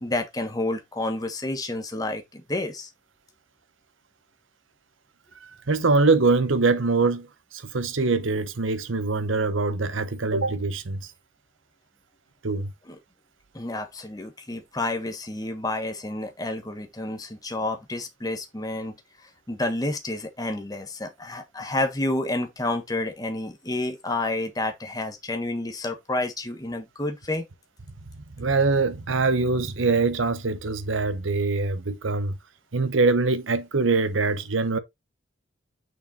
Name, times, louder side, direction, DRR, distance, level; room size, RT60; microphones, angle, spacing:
voice 1, 0.0-2.9 12.9-13.0 13.5-19.0 19.5-27.5, left 2 dB, 20° left, 1.3 m, -30 dB
voice 2, 5.4-7.3 7.5-11.1 12.4-12.7 28.4-32.4 32.7-34.8, right 3 dB, 80° right, 0.9 m, -23 dB
6.3 x 4.6 x 4.1 m
head